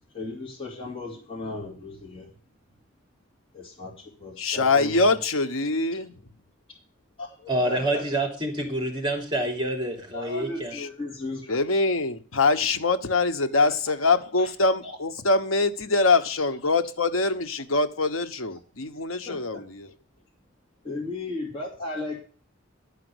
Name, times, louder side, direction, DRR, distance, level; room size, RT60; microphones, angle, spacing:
voice 1, 0.1-2.3 3.5-5.2 7.2-8.0 10.1-11.6 13.6-13.7 14.1-14.5 14.8-15.0 16.0-16.1 19.2-19.6 20.8-22.2, left 2 dB, 25° left, 2.8 m, -36 dB
voice 2, 4.4-6.1 10.7-10.9 11.5-19.9, left 3 dB, 80° left, 1.1 m, -24 dB
voice 3, 7.5-10.8, right 1 dB, 20° right, 3.2 m, -27 dB
11.5 x 5.1 x 7.9 m
head